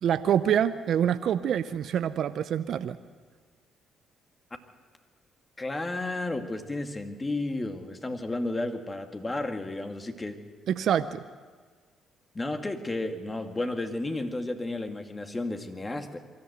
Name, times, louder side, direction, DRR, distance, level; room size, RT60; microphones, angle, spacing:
voice 1, 0.0-3.0 10.7-11.2, right 9 dB, 65° right, 12 dB, 0.6 m, -26 dB
voice 2, 5.6-10.4 12.3-16.2, left 2 dB, 25° left, 5 dB, 2.1 m, -32 dB
23.5 x 13.5 x 8.1 m, 1.5 s
hypercardioid pair, 55°, 0 cm